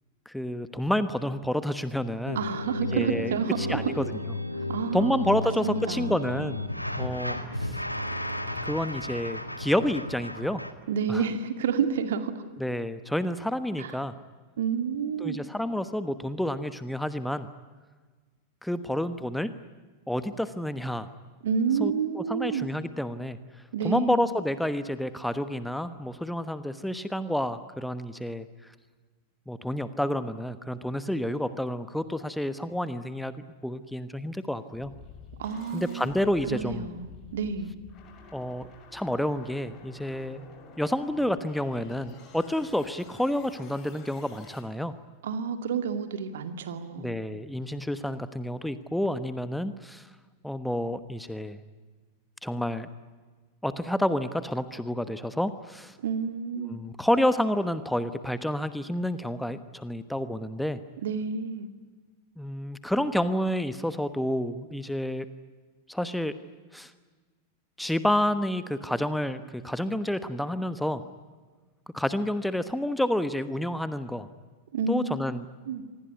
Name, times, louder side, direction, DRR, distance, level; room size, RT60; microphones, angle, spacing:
voice 1, 0.2-2.4 2.9-4.2 4.9-6.7 7.0-7.8 8.6-10.6 11.1-11.2 12.6-14.1 15.2-17.5 18.6-19.5 20.1-21.1 21.8-23.4 23.8-28.7 29.5-33.3 33.6-34.9 35.7-36.9 38.3-40.4 40.8-44.9 47.0-50.1 50.4-51.6 52.4-52.9 53.6-56.0 56.6-60.8 62.4-65.3 65.9-66.3 66.7-66.9 67.8-71.0 71.9-74.3 74.9-75.5, left 1 dB, ahead, 12 dB, 1.2 m, -29 dB
sound 1, 2.2-10.7, left 1 dB, 90° left, 1.7 m, -33 dB
voice 2, 2.3-3.9 4.7-6.2 10.9-12.4 13.8-14.0 14.6-15.4 21.4-22.7 23.7-24.3 35.4-36.1 36.5-37.7 45.2-47.1 56.0-56.8 61.0-61.7 74.7-75.1 75.7-75.8, right 6 dB, 60° right, 9 dB, 2.4 m, -29 dB
sound 2, 34.7-44.6, left 5 dB, 35° left, 6.0 m, -50 dB
26.5 x 19.5 x 9.7 m, 1.4 s
figure-of-eight pair, 90°, 0 cm